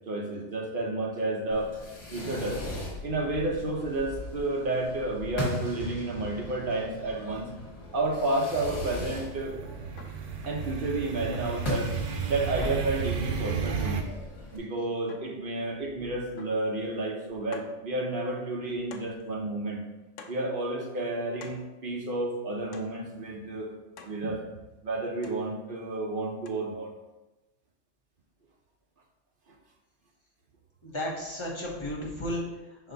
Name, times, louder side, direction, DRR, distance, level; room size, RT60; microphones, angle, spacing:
voice 1, 0.1-1.7 2.1-2.6 3.0-7.5 7.9-9.6 10.4-11.9 12.3-14.0 14.5-19.8 20.3-23.7 24.0-24.4 24.8-26.9, right 2 dB, 45° right, 0 dB, 1.1 m, -31 dB
Fireworks, 1.5-14.6, left 1 dB, 60° left, 1.7 m, -39 dB
sound 1, 8.6-14.0, right 7 dB, 85° right, 1.1 m, -34 dB
sound 2, 10.0-10.3 11.3-11.7 12.6-13.0 13.9-14.2 15.1-15.5 16.4-16.7 17.0-17.1 17.5-17.8 18.9-19.2 20.2-20.5 21.4-21.7 22.7-23.0 24.0-24.3 25.2-25.5 26.5-26.6, left 4 dB, 85° left, 1.0 m, -48 dB
voice 2, 30.8-32.9, left 1 dB, 25° left, -5 dB, 1.3 m, -34 dB
5.8 x 4.3 x 4.0 m, 1.0 s
omnidirectional pair, 1.3 m